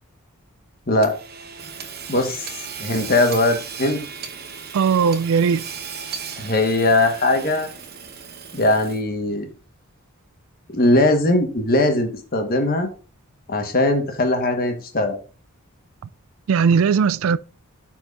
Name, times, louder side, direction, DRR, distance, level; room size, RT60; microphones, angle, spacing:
Hammer / Sawing, 1.0-9.2, right 6 dB, 45° right, 0.9 m, -36 dB
voice 1, 2.1-2.4 2.8-4.0 6.4-7.7 8.5-9.5 10.7-12.9 13.5-15.2, left 2 dB, 40° left, 1.3 m, -20 dB
voice 2, 4.7-5.7 16.5-17.4, right 6 dB, 65° right, 0.3 m, -18 dB
12.5 x 4.6 x 2.5 m
head